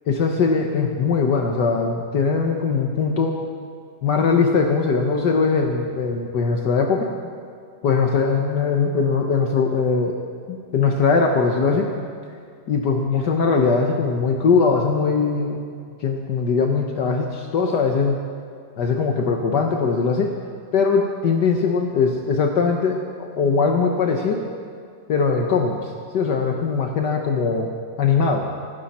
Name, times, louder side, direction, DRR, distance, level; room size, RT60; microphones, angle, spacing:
voice 1, 0.1-3.4 4.0-7.1 7.8-10.2 10.5-11.9 12.7-15.6 16.0-18.2 18.8-20.3 20.7-24.4 25.1-27.7 28.0-28.5, left 5 dB, 70° left, 2 dB, 1.6 m, -20 dB
26.5 x 12.0 x 4.3 m, 2.3 s
omnidirectional pair, 1.9 m